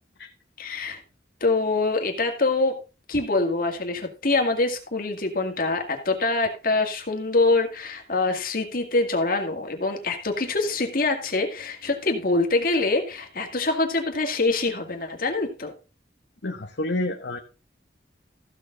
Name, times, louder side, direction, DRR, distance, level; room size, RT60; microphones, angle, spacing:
voice 1, 0.6-1.0 1.4-2.7 3.1-15.7, left 3 dB, 50° left, 3 dB, 2.1 m, -24 dB
voice 2, 16.4-17.4, left 1 dB, 80° left, 3 dB, 1.0 m, -28 dB
14.5 x 7.0 x 3.9 m, 0.33 s
head